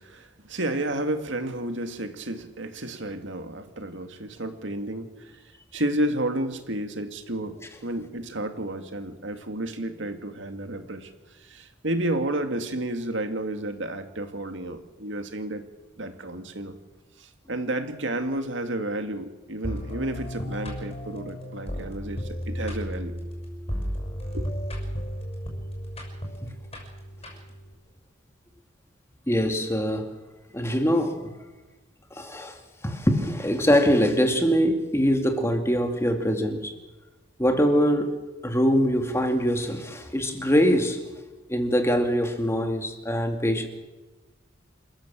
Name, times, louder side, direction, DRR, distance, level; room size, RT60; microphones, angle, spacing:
voice 1, 0.0-5.3 5.7-7.6 7.8-15.6 16.0-16.7 17.2-23.2 24.3-24.5, right 1 dB, 70° right, 2.3 m, -31 dB
sound 1, 19.6-27.7, equal, 30° left, 6.5 m, -34 dB
voice 2, 29.3-30.1 30.5-31.2 32.1-32.6 32.8-36.7 37.4-38.1 38.4-41.0 41.5-43.7, equal, 15° left, 2.3 m, -23 dB
27.5 x 14.5 x 7.6 m
head